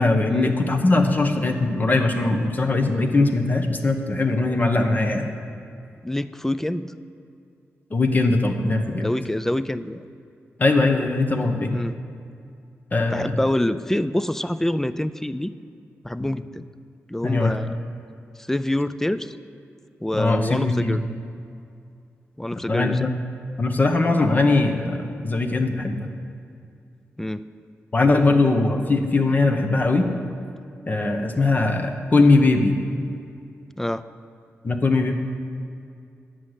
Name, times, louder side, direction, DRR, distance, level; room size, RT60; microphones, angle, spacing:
voice 1, 0.0-5.3 7.9-9.1 10.6-11.8 12.9-13.4 16.2-16.3 17.2-17.6 20.1-21.0 22.7-23.1 23.6-26.1 27.9-30.1 30.9-32.7 34.6-35.1, left 3 dB, 35° left, 5 dB, 1.0 m, -20 dB
voice 2, 6.0-6.9 9.0-10.0 11.7-12.0 13.1-15.5 16.0-16.6 17.1-17.8 18.4-19.4 20.0-21.0 22.4-23.0 27.2-27.4 33.8-34.0, left 1 dB, 10° left, 13 dB, 0.3 m, -26 dB
9.9 x 6.2 x 8.1 m, 2.4 s
cardioid pair, 90°, 5 cm